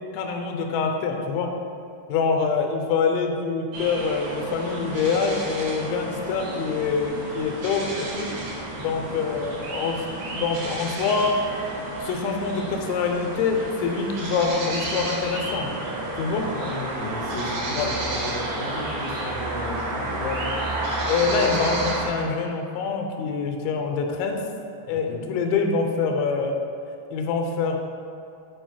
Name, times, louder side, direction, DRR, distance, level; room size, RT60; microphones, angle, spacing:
voice 1, 0.1-1.5 2.1-8.3 8.8-10.1 10.3-11.3 12.0-15.7 16.2-16.5 17.8-17.9 20.2-20.4 21.1-24.4 24.9-26.6 27.1-27.8, left 5 dB, 85° left, 3 dB, 3.1 m, -25 dB
sound 1, 3.7-22.1, right 2 dB, 85° right, 3.8 m, -31 dB
voice 2, 16.4-20.2 21.2-21.6 24.9-25.2, left 1 dB, 50° left, -9 dB, 2.5 m, -34 dB
8.8 x 5.0 x 4.5 m, 2.5 s
omnidirectional pair, 5.3 m